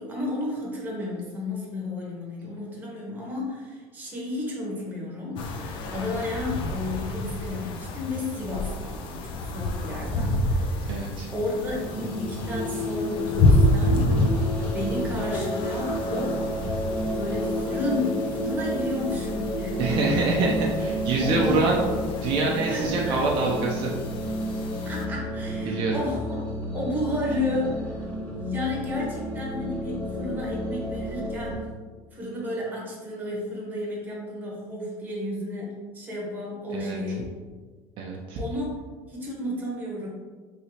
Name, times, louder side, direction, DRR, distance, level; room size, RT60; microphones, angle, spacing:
voice 1, 0.0-11.1 11.3-14.1 14.6-16.5 17.1-20.3 21.2-21.7 22.7-23.2 24.8-26.5 26.7-31.7 32.1-37.4 38.4-38.7 39.1-40.1, left 2 dB, 15° right, -4 dB, 0.9 m, -32 dB
sound 1, 5.4-25.0, left 1 dB, 50° left, 0.4 m, -29 dB
voice 2, 10.9-11.3 19.8-21.8 22.2-23.9 25.7-26.0 36.7-37.0 38.0-38.4, right 3 dB, 50° right, -2 dB, 0.5 m, -25 dB
sound 2, 11.7-31.5, equal, 15° left, 0.9 m, -31 dB
3.1 x 2.9 x 2.8 m, 1.4 s
cardioid pair, 140°, 11 cm